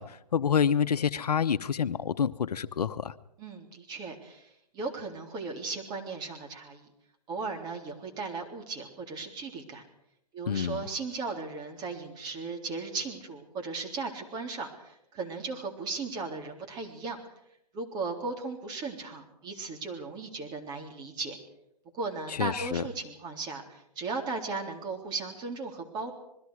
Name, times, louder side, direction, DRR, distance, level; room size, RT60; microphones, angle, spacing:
voice 1, 0.0-3.1 10.5-10.8 22.3-22.8, left 7 dB, 70° left, 12 dB, 1.2 m, -28 dB
voice 2, 3.4-4.5 4.7-6.9 7.3-9.8 10.3-17.2 17.7-21.4 21.9-26.1, right 4 dB, 20° right, 2 dB, 3.7 m, -36 dB
27.5 x 21.5 x 5.0 m, 0.78 s
hypercardioid pair, 140°, 21 cm